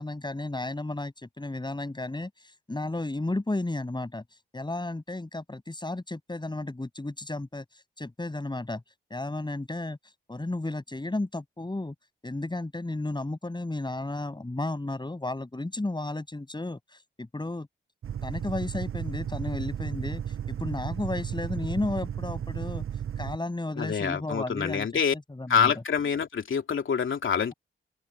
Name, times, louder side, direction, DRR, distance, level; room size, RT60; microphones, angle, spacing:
voice 1, 0.0-8.8 9.1-11.9 12.2-17.7 18.2-22.8 23.2-24.9 25.1-25.7, left 2 dB, 20° left, 7.9 m, -33 dB
sound 1, 18.0-23.4, right 9 dB, 85° right, 7.4 m, -34 dB
voice 2, 23.8-25.1 25.5-27.5, left 6 dB, 70° left, 2.9 m, -26 dB
open air
cardioid pair, 65°, 21 cm